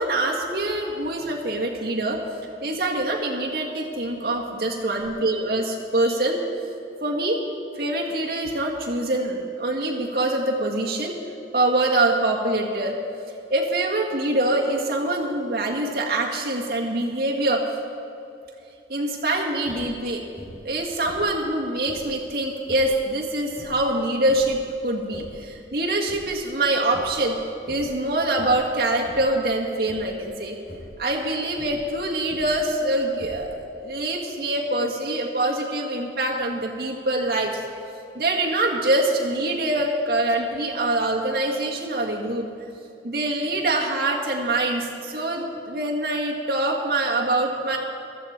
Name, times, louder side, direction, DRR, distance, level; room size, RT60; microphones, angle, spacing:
voice 1, 0.0-2.2 2.6-6.4 7.0-7.4 7.8-11.1 11.5-13.0 13.5-17.6 18.9-20.2 20.6-27.4 27.7-30.6 31.0-37.6 38.1-42.5 43.0-47.8, right 2 dB, 55° right, -1 dB, 1.8 m, -24 dB
sound 1, 19.6-20.0 20.4-20.7 21.0-22.2 22.6-23.0 23.5-24.6 25.0-25.5 25.9-26.6 26.9-27.3 27.6-28.0 28.4-28.7 29.0-29.4 29.8-30.2 30.6-30.9 31.5-32.7 33.1-33.7, equal, 50° left, 3.4 m, -43 dB
15.0 x 13.5 x 4.4 m, 2.7 s
head